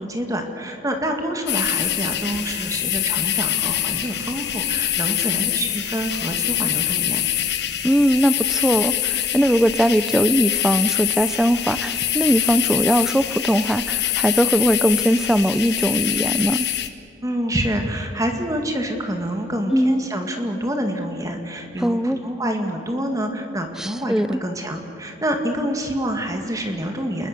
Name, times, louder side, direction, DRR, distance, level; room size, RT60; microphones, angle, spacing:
voice 1, 0.0-7.2 17.2-27.3, right 1 dB, 20° right, 4 dB, 1.9 m, -27 dB
sound 1, 1.5-16.9, left 12 dB, 65° left, 1.2 m, -24 dB
voice 2, 7.8-16.7 19.7-20.0 21.8-22.2 23.8-24.3, equal, 5° right, 13 dB, 0.5 m, -20 dB
28.5 x 21.5 x 6.7 m, 3.0 s
head